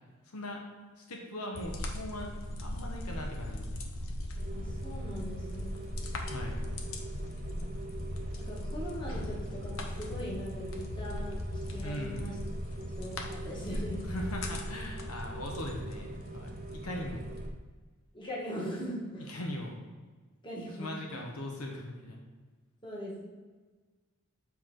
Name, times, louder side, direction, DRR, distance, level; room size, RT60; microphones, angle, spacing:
voice 1, 0.3-0.6 1.0-3.8 6.2-6.6 11.8-12.3 14.1-17.3 19.3-19.8 20.8-22.2, left 1 dB, 85° left, 0 dB, 1.1 m, -40 dB
sound 1, 1.5-17.5, left 1 dB, 65° left, 0.8 m, -39 dB
Rain, 4.4-17.5, right 2 dB, 35° right, 0.6 m, -44 dB
voice 2, 4.5-5.8 8.4-11.4 11.7-12.3 13.0-14.0 18.1-19.3 20.4-21.2 22.8-23.3, equal, 20° left, -4 dB, 1.5 m, -40 dB
7.3 x 4.6 x 3.8 m, 1.4 s
head